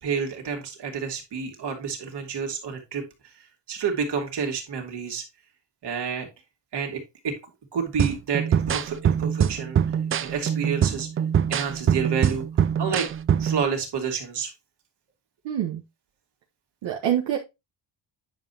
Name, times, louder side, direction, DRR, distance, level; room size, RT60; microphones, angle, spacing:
voice 1, 0.0-3.0 3.7-5.2 5.8-6.3 6.7-7.4 7.7-9.8 10.2-11.1 11.5-12.5 12.8-13.1 13.4-14.5, right 6 dB, 60° right, 2.5 m, -29 dB
sound 1, 8.0-13.6, right 8 dB, 30° right, 0.3 m, -24 dB
voice 2, 15.4-15.8 16.8-17.4, right 10 dB, 80° right, 1.4 m, -25 dB
9.5 x 5.3 x 2.9 m
cardioid pair, 100°, 45 cm